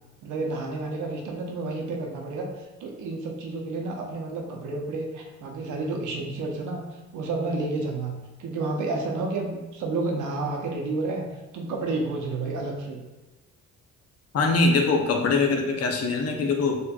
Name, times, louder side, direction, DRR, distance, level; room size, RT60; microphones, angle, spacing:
voice 1, 0.2-2.5 2.8-6.8 7.1-8.1 8.4-11.2 11.5-13.0, right 3 dB, 80° right, 1 dB, 0.8 m, -30 dB
voice 2, 14.3-16.8, left 3 dB, 55° left, 3 dB, 0.7 m, -22 dB
4.2 x 3.1 x 2.3 m, 1.1 s
cardioid pair, 90°, 30 cm